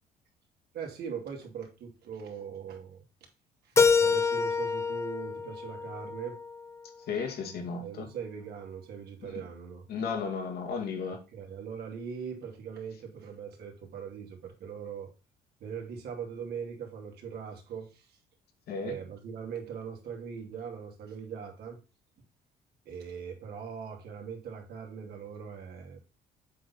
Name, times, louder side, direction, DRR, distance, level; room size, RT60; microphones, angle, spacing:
voice 1, 0.7-3.0 3.6-6.4 7.4-9.9 11.3-15.1 15.6-18.1 18.8-21.8 22.9-26.0, right 7 dB, 70° right, 2.5 m, -41 dB
Keyboard (musical), 3.8-6.7, left 5 dB, 15° left, 0.6 m, -27 dB
voice 2, 7.1-8.1 9.2-9.4 9.9-11.2 18.7-19.0, left 5 dB, 70° left, 2.1 m, -34 dB
7.5 x 4.2 x 4.1 m
cardioid pair, 110°, 17 cm